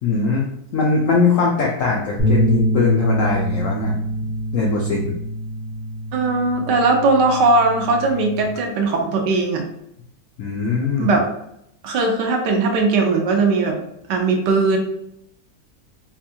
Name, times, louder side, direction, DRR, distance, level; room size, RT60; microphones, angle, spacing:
voice 1, 0.0-3.9 4.5-5.2 10.4-11.2, left 4 dB, 75° left, -3 dB, 0.7 m, -20 dB
sound 1, 2.2-8.4, right 1 dB, 5° left, 0.4 m, -25 dB
voice 2, 6.1-9.6 11.0-11.2 11.8-13.8 14.1-14.8, right 3 dB, 70° right, 2 dB, 1.2 m, -19 dB
4.3 x 2.2 x 2.7 m, 0.76 s
omnidirectional pair, 2.0 m